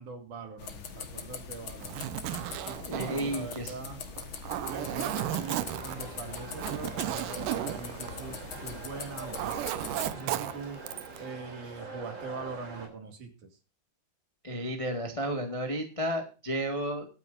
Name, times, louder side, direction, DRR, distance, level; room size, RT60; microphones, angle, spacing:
voice 1, 0.0-2.1 2.6-2.8 3.3-4.0 4.6-9.7 10.1-10.8 11.2-13.3, right 4 dB, 55° right, 5 dB, 3.6 m, -42 dB
sound 1, 0.6-10.1, left 5 dB, 50° left, 1.6 m, -42 dB
Zipper (clothing), 1.7-8.8 9.1-11.2, right 13 dB, 75° right, 2.2 m, -35 dB
voice 2, 2.8-3.7 14.4-17.1, equal, 25° left, 4 dB, 0.7 m, -32 dB
sound 2, 4.7-12.9, right 3 dB, 30° right, 3.7 m, -44 dB
22.5 x 9.4 x 2.6 m, 0.32 s
omnidirectional pair, 4.4 m